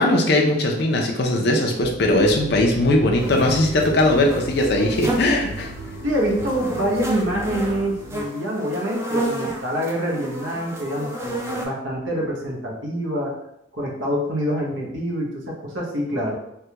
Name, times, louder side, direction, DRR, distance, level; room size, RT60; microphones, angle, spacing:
voice 1, 0.0-5.7, left 1 dB, 60° left, 1 dB, 0.5 m, -19 dB
sound 1, 1.8-8.2, right 1 dB, 45° right, 0.8 m, -35 dB
sound 2, 3.2-11.7, right 1 dB, 15° right, 0.4 m, -32 dB
voice 2, 6.0-13.3 13.7-16.4, equal, 85° right, -2 dB, 0.8 m, -26 dB
3.3 x 2.2 x 2.8 m, 0.80 s
head